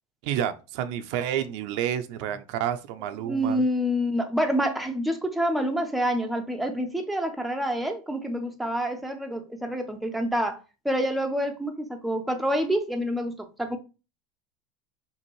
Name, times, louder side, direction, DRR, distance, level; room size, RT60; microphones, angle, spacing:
voice 1, 0.2-3.6, right 10 dB, 65° right, 0.6 m, -29 dB
voice 2, 3.2-13.8, equal, ahead, 0.5 m, -27 dB
5.4 x 2.6 x 3.0 m
supercardioid pair, 140°, 16 cm